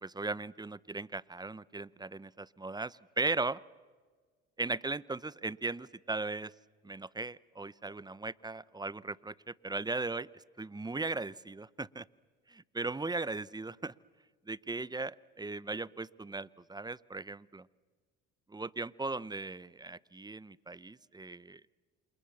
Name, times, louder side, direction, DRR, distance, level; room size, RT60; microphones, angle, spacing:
voice 1, 0.0-3.6 4.6-6.5 6.8-12.1 12.5-13.9 14.5-17.7 18.5-21.6, right 3 dB, 10° right, 21 dB, 0.7 m, -38 dB
30.0 x 28.0 x 7.1 m, 1.5 s
supercardioid pair, 75°, 33 cm